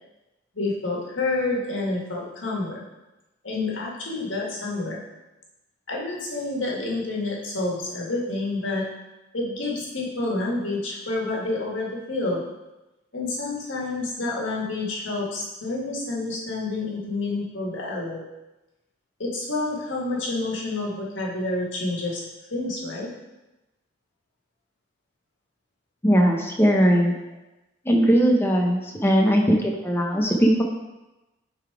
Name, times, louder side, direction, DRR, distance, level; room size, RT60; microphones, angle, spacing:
voice 1, 0.5-2.8 3.4-5.0 5.9-8.9 9.3-12.5 13.1-18.2 19.2-22.2 22.5-23.1, left 2 dB, 75° left, -4 dB, 1.8 m, -28 dB
voice 2, 26.0-27.1 27.8-30.6, equal, 10° left, 1 dB, 0.8 m, -19 dB
7.2 x 3.9 x 4.7 m, 1.0 s
head